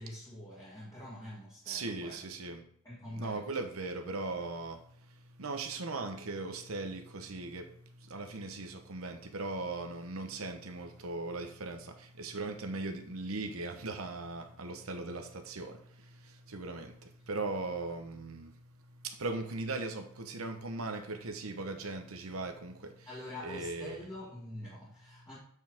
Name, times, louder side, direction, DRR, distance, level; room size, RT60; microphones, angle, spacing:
voice 1, 0.0-2.3 2.8-3.6 23.1-25.4, left 1 dB, 15° left, -8 dB, 1.9 m, -45 dB
voice 2, 1.7-2.7 3.1-23.1 23.4-24.1, right 3 dB, 75° right, 6 dB, 1.0 m, -39 dB
8.2 x 4.7 x 3.6 m, 0.64 s
head